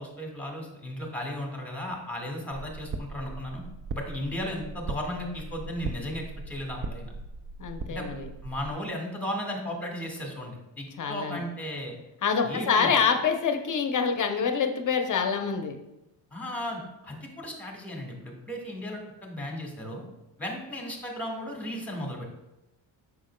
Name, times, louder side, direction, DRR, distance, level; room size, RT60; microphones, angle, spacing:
voice 1, 0.0-3.6 3.9-7.1 7.9-8.1 8.4-11.9 12.4-13.0 16.3-20.0 20.4-22.2, left 1 dB, 5° left, 0 dB, 1.6 m, -35 dB
sound 1, 2.5-8.7, right 3 dB, 30° right, 0.4 m, -39 dB
voice 2, 7.6-8.3 11.0-11.4 12.2-15.8, left 6 dB, 40° left, 5 dB, 0.7 m, -26 dB
7.6 x 5.8 x 2.2 m, 0.92 s
cardioid pair, 105°, 46 cm